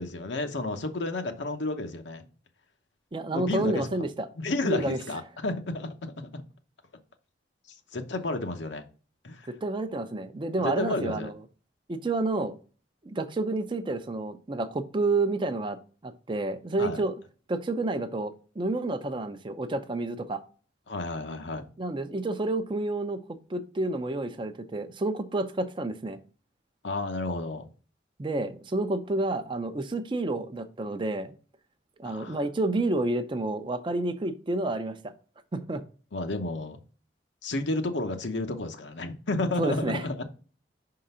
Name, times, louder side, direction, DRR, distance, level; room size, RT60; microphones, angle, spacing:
voice 1, 0.0-2.3 3.3-3.9 4.4-6.4 7.9-8.9 9.2-9.5 10.6-11.3 16.8-17.0 20.9-21.6 26.8-27.7 32.0-32.4 36.1-36.8 37.4-40.2, left 2 dB, 80° left, 0.9 m, -31 dB
voice 2, 3.1-4.3 4.6-5.0 9.6-11.3 11.9-12.6 13.0-15.8 16.0-17.1 17.5-20.4 21.8-23.2 23.5-26.2 28.2-31.3 32.0-35.1 35.5-35.8 39.6-40.0, right 2 dB, 25° right, 0.5 m, -29 dB
5.7 x 3.8 x 5.4 m
head